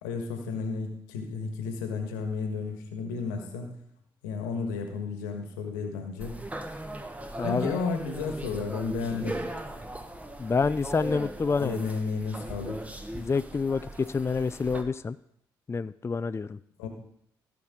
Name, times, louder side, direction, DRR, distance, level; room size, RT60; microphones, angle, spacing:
voice 1, 0.0-3.8 4.2-6.4 7.4-9.3 11.6-12.8 16.8-16.9, left 4 dB, 85° left, 4 dB, 1.4 m, -32 dB
sound 1, 6.2-14.8, right 1 dB, 15° right, 1.4 m, -39 dB
voice 2, 7.4-7.7 10.4-11.8 13.1-15.1 15.7-16.6, left 4 dB, 25° left, 15 dB, 0.4 m, -28 dB
15.5 x 6.0 x 3.7 m, 0.71 s
hypercardioid pair, 45°, 11 cm